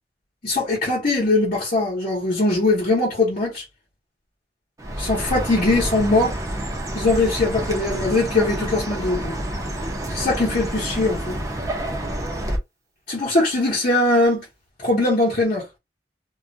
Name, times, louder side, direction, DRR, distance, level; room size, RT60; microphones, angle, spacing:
voice 1, 0.4-3.6 5.0-6.3 6.9-9.4 10.1-11.4 13.1-14.4 14.8-15.6, left 2 dB, 50° left, 0.9 m, -21 dB
Chirp tweet, 4.8-12.6, right 1 dB, 20° right, 0.5 m, -28 dB
2.4 x 2.1 x 2.5 m
head